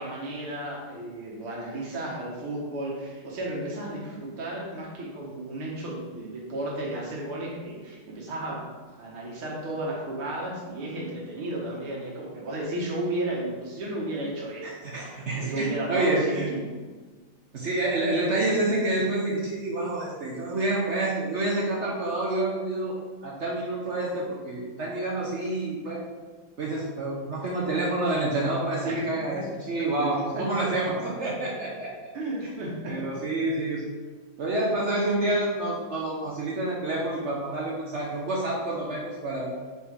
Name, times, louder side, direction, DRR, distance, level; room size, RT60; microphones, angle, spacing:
voice 1, 0.0-16.8 28.8-29.5 30.0-30.1 30.3-30.7 32.1-33.1, right 1 dB, 80° right, -4 dB, 2.3 m, -34 dB
voice 2, 14.6-16.5 17.5-22.9 23.2-26.0 26.6-31.9 32.9-33.8 34.4-39.6, right 2 dB, 65° right, -3 dB, 0.7 m, -28 dB
6.1 x 4.4 x 3.6 m, 1.4 s
omnidirectional pair, 2.3 m